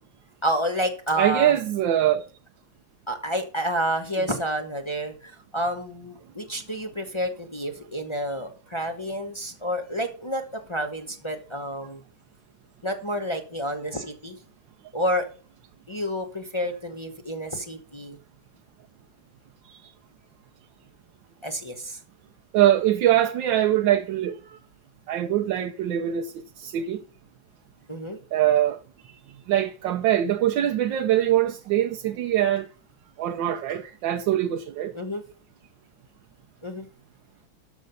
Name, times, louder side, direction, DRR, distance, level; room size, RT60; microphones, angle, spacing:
voice 1, 0.4-1.6 3.1-12.0 12.8-14.4 14.9-15.3 15.9-18.2 21.4-22.0 27.9-28.2 34.9-35.2 36.6-36.9, equal, 20° left, 0.8 m, -29 dB
voice 2, 1.2-2.2 13.9-14.0 22.5-24.6 25.1-27.0 28.3-28.8 29.5-32.7 33.2-34.9, right 12 dB, 90° right, 1.4 m, -23 dB
12.5 x 5.7 x 5.3 m
omnidirectional pair, 2.0 m